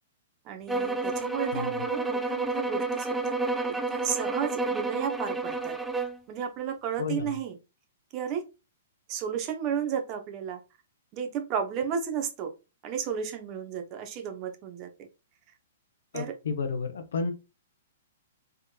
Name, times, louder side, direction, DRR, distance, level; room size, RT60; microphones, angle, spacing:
voice 1, 0.4-3.4 3.7-5.8 6.3-7.6 8.1-8.4 9.1-10.6 11.1-12.5 12.8-14.9 16.1-16.4, right 7 dB, 35° right, 0.8 m, -33 dB
sound 1, 0.7-6.2, right 3 dB, 5° right, 0.3 m, -30 dB
voice 2, 7.0-7.3 16.1-17.3, left 4 dB, 70° left, 0.7 m, -31 dB
3.5 x 3.1 x 2.3 m
hypercardioid pair, 115°, 0 cm